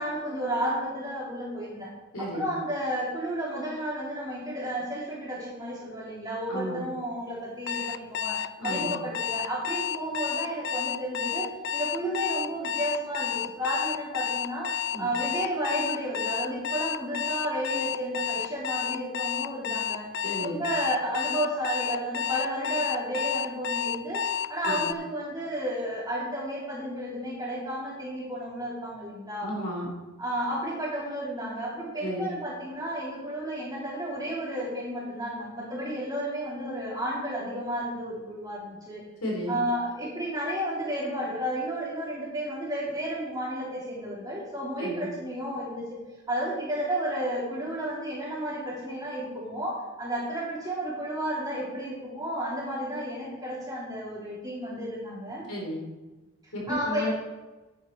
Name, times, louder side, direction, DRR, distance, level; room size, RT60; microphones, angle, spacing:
voice 1, 0.0-1.9 2.2-20.1 20.4-29.5 30.2-39.0 39.5-46.0 46.3-55.4 56.4-57.1, right 1 dB, 15° right, -6 dB, 3.3 m, -32 dB
voice 2, 2.1-2.5 6.5-6.8 8.6-8.9 14.9-15.1 20.2-20.6 24.6-24.9 29.4-29.9 32.0-32.3 39.2-39.6 44.8-45.1 55.5-55.8 56.5-57.1, equal, 85° left, -1 dB, 3.2 m, -33 dB
Alarm, 7.7-24.9, left 9 dB, 50° left, 0.3 m, -31 dB
10.0 x 9.7 x 4.0 m, 1.2 s
head